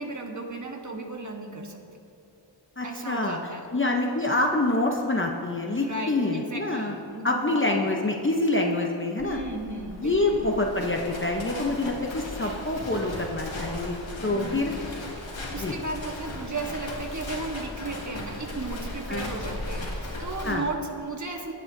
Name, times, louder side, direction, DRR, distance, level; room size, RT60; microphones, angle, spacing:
voice 1, 0.0-1.8 2.8-3.6 5.8-7.8 9.2-10.4 14.3-14.8 15.2-21.5, right 2 dB, 40° right, 2 dB, 1.3 m, -35 dB
voice 2, 2.8-3.4 3.7-7.0 7.2-9.4 10.0-14.7 15.5-15.7 19.1-19.3 20.4-20.7, left 2 dB, 25° left, 1 dB, 0.7 m, -26 dB
Livestock farm animals working animals, 9.2-20.5, left 1 dB, 90° left, 1.7 m, -37 dB
18.0 x 7.6 x 2.7 m, 2.9 s
wide cardioid pair, 75°, 45 cm